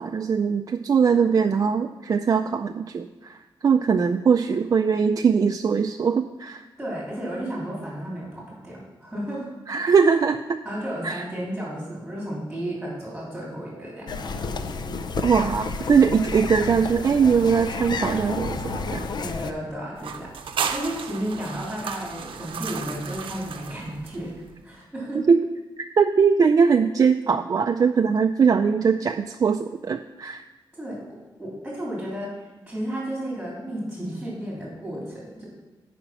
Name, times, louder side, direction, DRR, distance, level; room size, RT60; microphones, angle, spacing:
voice 1, 0.0-3.4 3.6-6.6 9.7-10.6 11.0-11.2 15.2-19.1 25.2-25.4 25.8-30.4, right 6 dB, 45° right, 5 dB, 0.3 m, -21 dB
voice 2, 6.8-9.5 10.6-14.2 19.2-20.3 20.7-24.4 24.6-25.2 30.7-35.5, right 1 dB, 5° right, -5 dB, 3.2 m, -33 dB
sound 1, 13.1-18.9, left 2 dB, 90° left, 1.7 m, -40 dB
sound 2, 14.1-19.5, left 4 dB, 55° left, 0.6 m, -31 dB
sound 3, 20.0-24.5, right 6 dB, 85° right, 0.6 m, -33 dB
8.7 x 5.1 x 5.9 m, 1.1 s
cardioid pair, 100°, 9 cm